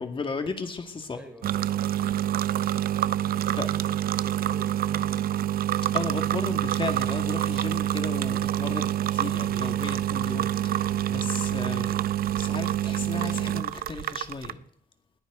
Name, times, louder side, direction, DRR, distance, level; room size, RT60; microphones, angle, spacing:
voice 1, 0.0-1.2 3.6-3.7 5.9-12.0 12.3-14.6, left 4 dB, 35° left, 6 dB, 2.3 m, -35 dB
voice 2, 1.1-1.9, equal, 5° right, 3 dB, 4.4 m, -47 dB
sound 1, 1.4-14.5, right 12 dB, 75° right, 0.6 m, -27 dB
20.5 x 14.5 x 4.0 m, 0.68 s
cardioid pair, 110°, 16 cm